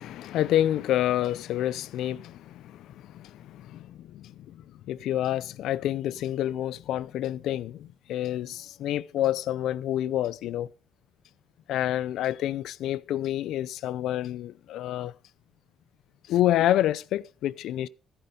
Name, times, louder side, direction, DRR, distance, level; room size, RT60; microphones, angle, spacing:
voice 1, 0.0-10.7 11.7-15.1 16.3-17.9, left 12 dB, 85° left, 0.6 m, -28 dB
15.0 x 9.1 x 5.3 m
cardioid pair, 90°, 0 cm